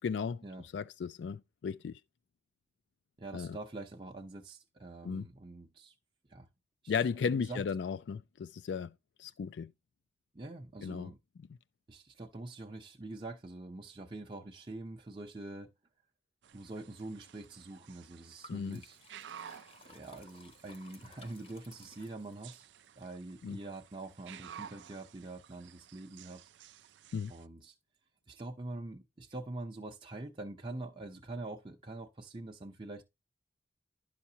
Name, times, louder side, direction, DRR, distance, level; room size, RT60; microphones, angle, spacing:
voice 1, 0.0-2.0 3.3-3.6 5.0-5.3 6.9-8.9 9.2-9.7 10.8-11.1 18.5-18.8 23.4-23.6 27.1-27.3, left 6 dB, 85° left, 0.3 m, -35 dB
voice 2, 3.2-5.9 6.3-6.5 6.8-7.6 10.3-11.2 11.9-15.7 16.5-19.0 19.8-22.7 23.0-26.4 27.3-27.8 28.3-33.0, right 2 dB, 25° right, 0.6 m, -45 dB
sound 1, 16.4-27.5, right 8 dB, 85° right, 0.4 m, -54 dB
Liquid, 18.4-22.6, left 3 dB, 30° left, 0.7 m, -58 dB
11.0 x 5.8 x 2.7 m
head